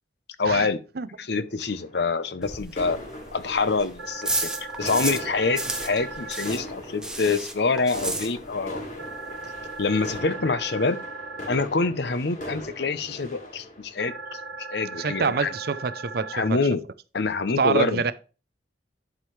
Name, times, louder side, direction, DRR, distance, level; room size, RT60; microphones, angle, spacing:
voice 1, 0.4-0.8 1.2-3.0 3.3-8.8 9.8-11.0 11.5-14.4 14.7-15.5 16.3-16.8 17.1-18.0, left 4 dB, 65° left, 0.7 m, -26 dB
sound 1, 1.6-15.2, left 1 dB, 45° left, 2.7 m, -40 dB
sound 2, 2.4-5.3 5.5-8.8 9.0-9.1 9.4-9.5 9.7-10.2, right 2 dB, 5° right, 0.9 m, -32 dB
sound 3, 4.0-6.5 9.0-11.5 14.0-16.5, right 3 dB, 90° right, 1.6 m, -38 dB
voice 2, 15.0-16.6 17.6-18.1, right 5 dB, 55° right, 0.5 m, -25 dB
11.0 x 4.8 x 3.2 m
head